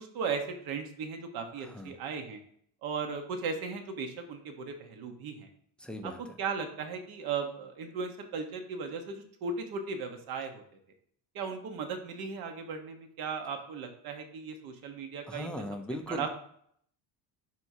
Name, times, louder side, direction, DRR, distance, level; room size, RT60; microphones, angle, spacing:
voice 1, 0.1-2.4 2.8-5.5 6.0-6.1 6.4-10.6 11.3-15.5 16.1-16.3, right 5 dB, 60° right, 5 dB, 1.2 m, -36 dB
voice 2, 1.6-1.9 5.8-6.4 15.3-16.3, left 1 dB, 5° left, 4 dB, 0.4 m, -39 dB
11.0 x 4.7 x 2.8 m, 0.65 s
cardioid pair, 170°, 40 cm